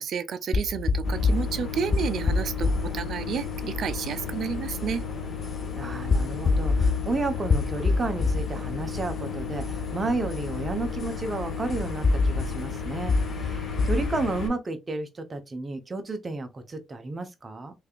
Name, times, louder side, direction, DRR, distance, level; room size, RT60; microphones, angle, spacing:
voice 1, 0.0-5.0, right 7 dB, 65° right, 0.5 m, -31 dB
sound 1, 0.5-14.5, left 4 dB, 45° left, 0.5 m, -28 dB
sound 2, 1.0-14.5, left 6 dB, 60° left, 1.3 m, -35 dB
voice 2, 5.8-17.7, right 3 dB, 30° right, 0.8 m, -32 dB
3.4 x 3.3 x 2.4 m
cardioid pair, 90°, 0 cm